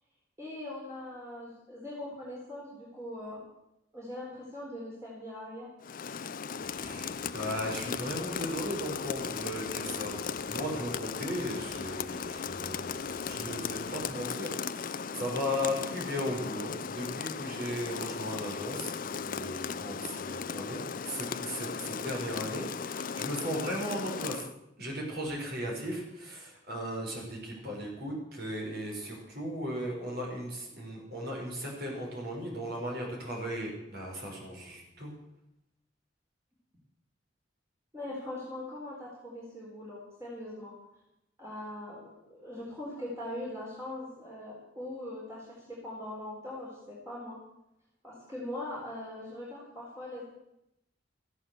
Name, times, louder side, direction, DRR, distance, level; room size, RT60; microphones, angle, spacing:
voice 1, 0.4-3.5 3.9-5.7 37.9-40.7 41.4-47.4 48.0-50.3, left 1 dB, 15° right, -6 dB, 4.2 m, -41 dB
Rain, 5.8-24.5, left 6 dB, 50° left, 0.5 m, -37 dB
sound 1, 6.6-14.2, left 1 dB, 5° left, 4.0 m, -53 dB
voice 2, 6.8-10.1 10.5-24.5 24.8-35.1, equal, 60° right, -1 dB, 5.8 m, -37 dB
15.0 x 9.7 x 8.0 m, 0.86 s
head